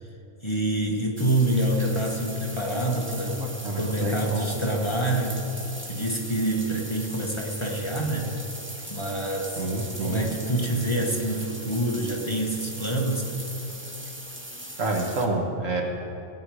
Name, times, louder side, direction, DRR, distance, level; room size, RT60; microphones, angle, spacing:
voice 1, 0.4-3.4 3.7-5.5 5.8-8.3 8.9-9.7 10.0-13.4, right 1 dB, 25° left, 0 dB, 1.3 m, -26 dB
sound 1, 1.2-15.3, right 1 dB, 10° right, 0.9 m, -39 dB
voice 2, 3.2-4.5 9.6-10.3 14.8-15.8, right 2 dB, 85° right, 0 dB, 2.0 m, -28 dB
18.5 x 9.4 x 4.8 m, 2.9 s
omnidirectional pair, 1.3 m